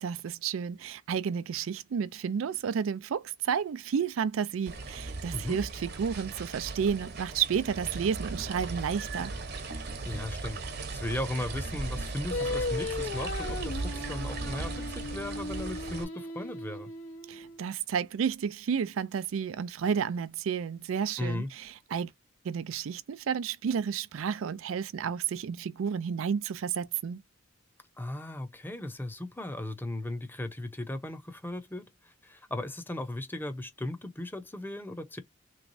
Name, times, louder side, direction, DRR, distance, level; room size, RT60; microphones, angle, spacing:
voice 1, 0.0-9.3 17.3-22.1 22.4-27.2, right 7 dB, 80° right, 0.4 m, -31 dB
sound 1, 4.7-16.0, right 3 dB, 55° right, 0.8 m, -37 dB
voice 2, 10.1-10.6 10.9-16.9 21.2-21.5 28.0-35.2, left 1 dB, 10° left, 0.6 m, -37 dB
Singing, 12.3-17.6, left 2 dB, 80° left, 1.2 m, -36 dB
3.4 x 3.0 x 2.6 m
head